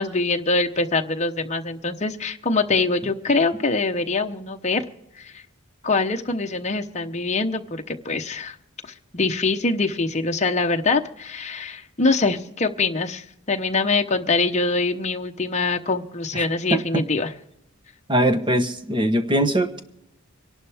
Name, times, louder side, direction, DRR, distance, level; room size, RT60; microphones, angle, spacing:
voice 1, 0.0-4.8 5.2-5.4 5.8-8.5 9.1-17.3, left 3 dB, 35° left, 4 dB, 0.9 m, -24 dB
voice 2, 16.7-17.0 18.1-19.8, right 1 dB, 20° right, 8 dB, 1.1 m, -21 dB
25.0 x 11.5 x 3.5 m, 0.83 s
head